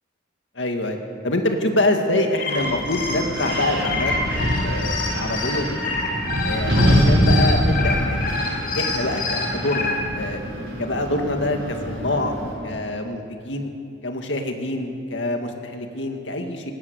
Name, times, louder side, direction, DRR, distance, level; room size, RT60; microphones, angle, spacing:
voice 1, 0.6-1.0 1.2-5.8 6.4-8.2 8.5-10.4 10.8-12.3 12.6-13.7 14.0-16.7, left 1 dB, 75° left, 4 dB, 2.2 m, -25 dB
sound 1, 2.2-9.9, left 4 dB, 50° left, 5.2 m, -27 dB
Wind, 2.6-12.5, equal, 75° right, 5.5 m, -24 dB
19.5 x 18.0 x 8.4 m, 2.4 s
head